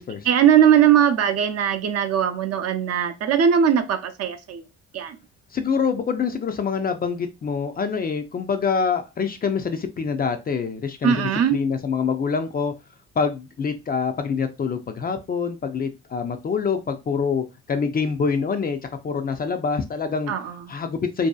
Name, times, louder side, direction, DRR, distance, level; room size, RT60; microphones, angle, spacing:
voice 1, 0.3-4.6 4.9-5.2 11.0-11.6 20.3-20.5, right 9 dB, 55° right, 0.5 m, -19 dB
voice 2, 5.5-12.7 13.2-18.8 19.0-20.3 20.7-21.3, left 5 dB, 30° left, 0.4 m, -25 dB
2.7 x 2.3 x 2.2 m
cardioid pair, 90°, 30 cm